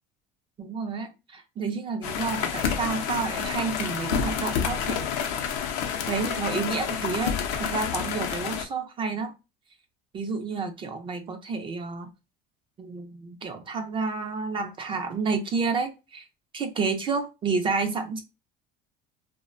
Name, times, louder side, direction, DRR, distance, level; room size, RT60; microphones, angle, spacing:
voice 1, 0.6-5.1 6.1-9.3 10.1-12.1 12.8-16.3 16.5-18.2, right 4 dB, 25° right, 0.4 m, -30 dB
sound 1, 2.0-8.6, left 7 dB, 90° left, 0.5 m, -29 dB
2.4 x 2.1 x 2.4 m
cardioid pair, 135°, 19 cm